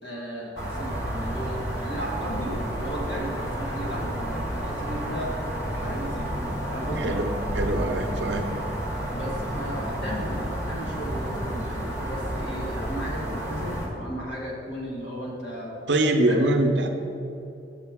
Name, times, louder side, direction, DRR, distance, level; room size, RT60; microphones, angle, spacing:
voice 1, 0.0-5.4 5.6-6.3 6.7-7.2 9.1-15.8 16.2-16.4, equal, 65° left, -3 dB, 1.5 m, -35 dB
sound 1, 0.6-13.9, equal, 15° left, 1.1 m, -31 dB
voice 2, 7.0-7.3 7.6-8.5 15.9-16.9, right 1 dB, 70° right, 4 dB, 0.7 m, -23 dB
7.5 x 6.6 x 3.6 m, 2.8 s
head